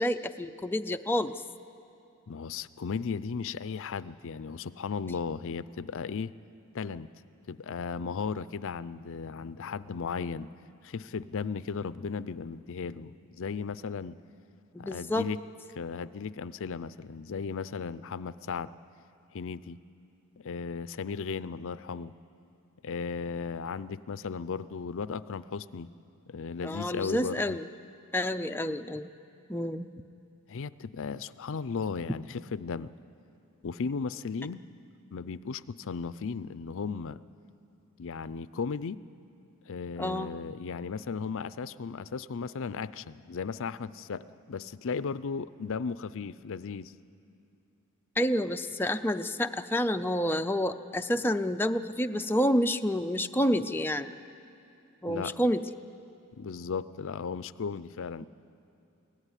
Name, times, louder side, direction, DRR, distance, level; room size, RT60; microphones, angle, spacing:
voice 1, 0.0-1.3 14.7-15.3 26.6-27.7 28.1-29.1 29.5-29.9 40.0-40.3 48.2-54.1 55.0-55.6, equal, 10° left, 6 dB, 0.5 m, -29 dB
voice 2, 2.3-6.3 6.7-7.1 7.5-10.5 10.8-14.2 14.8-15.4 15.8-18.7 19.3-19.8 20.4-22.1 22.8-25.9 26.3-27.6 30.5-32.9 33.6-34.7 35.1-37.2 38.0-39.0 39.7-46.9 55.1-55.3 56.3-58.3, left 5 dB, 60° left, 16 dB, 0.5 m, -36 dB
23.5 x 17.0 x 9.9 m, 2.6 s
head